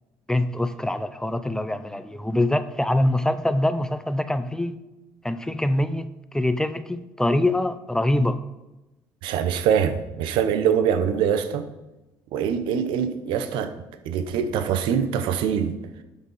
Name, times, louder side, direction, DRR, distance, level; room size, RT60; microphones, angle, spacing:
voice 1, 0.3-4.8 5.2-8.4, left 1 dB, 5° left, 11 dB, 0.5 m, -24 dB
voice 2, 9.2-11.7 12.3-13.7 14.0-15.8, right 8 dB, 80° right, 10 dB, 0.8 m, -23 dB
11.5 x 4.1 x 5.6 m, 1.0 s
cardioid pair, 95°, 8 cm